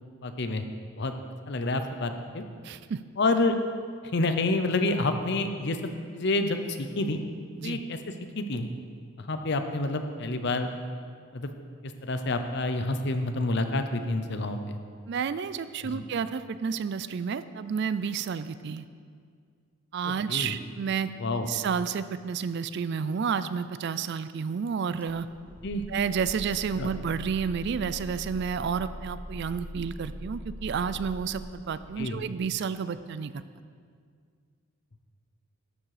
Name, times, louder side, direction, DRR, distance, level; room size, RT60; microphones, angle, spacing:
voice 1, 0.2-0.7 1.0-1.1 1.5-2.4 3.2-3.6 4.1-5.8 6.1-7.2 7.6-8.0 8.4-8.7 9.2-10.7 11.3-11.5 11.8-14.8 15.9-16.0 20.3-20.6 21.2-21.5 25.6-25.8 26.8-26.9 32.0-32.2, left 2 dB, 50° left, 7 dB, 0.7 m, -28 dB
voice 2, 2.6-3.0 7.6-7.8 15.1-18.9 19.9-21.1 21.5-25.3 25.9-33.3, right 6 dB, 50° right, 14 dB, 0.3 m, -30 dB
sound 1, 25.0-32.4, equal, 5° left, 0.7 m, -42 dB
12.0 x 7.4 x 4.9 m, 2.1 s
head